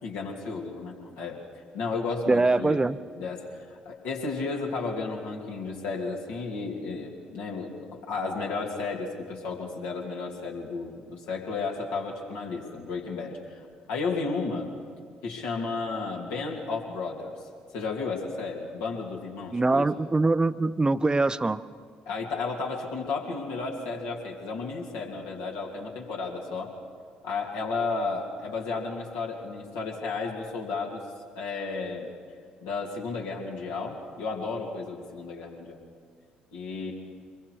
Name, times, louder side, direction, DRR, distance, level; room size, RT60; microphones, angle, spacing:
voice 1, 0.0-1.4 1.7-2.8 3.2-14.7 15.2-17.3 17.7-20.0 22.1-26.7 27.2-31.0 31.3-32.1 32.6-35.8 36.5-36.9, left 4 dB, 70° left, -1 dB, 2.9 m, -33 dB
voice 2, 2.3-3.0 19.5-21.6, right 3 dB, 20° right, 14 dB, 0.7 m, -23 dB
25.0 x 22.0 x 4.8 m, 2.1 s
hypercardioid pair, 50°, 4 cm